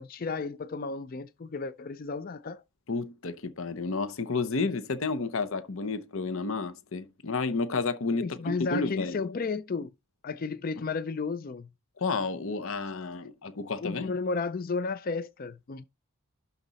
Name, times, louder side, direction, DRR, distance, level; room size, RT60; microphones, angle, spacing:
voice 1, 0.0-2.6 8.2-9.9 10.2-11.7 13.8-15.8, left 4 dB, 40° left, 0.4 m, -33 dB
voice 2, 2.9-9.2 12.0-14.1, left 3 dB, 60° left, 0.8 m, -31 dB
12.0 x 4.1 x 4.0 m
head